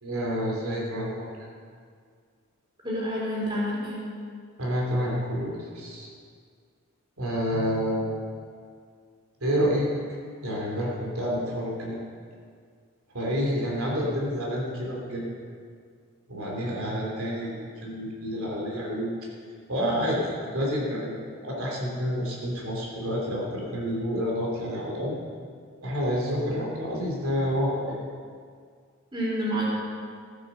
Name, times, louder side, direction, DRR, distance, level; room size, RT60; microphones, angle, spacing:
voice 1, 0.0-1.5 4.6-6.1 7.2-8.1 9.4-9.9 10.4-12.0 13.1-15.3 16.3-19.1 19.7-25.1 25.8-28.0, equal, 80° right, -3 dB, 3.1 m, -29 dB
voice 2, 2.8-4.0 29.1-29.6, equal, 20° right, -6 dB, 4.3 m, -28 dB
15.0 x 9.3 x 6.8 m, 2.1 s
head